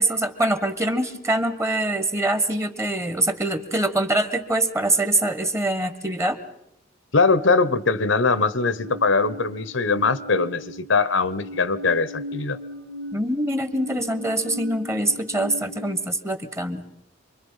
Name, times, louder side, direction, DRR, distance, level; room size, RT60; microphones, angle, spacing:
voice 1, 0.0-6.4 13.1-16.8, right 1 dB, 15° right, 11 dB, 1.4 m, -24 dB
voice 2, 7.1-12.6, left 4 dB, 75° left, 16 dB, 1.1 m, -21 dB
sound 1, 8.6-10.9 11.3-16.0, equal, 75° right, 2.0 m, -38 dB
27.5 x 22.5 x 5.7 m, 0.85 s
head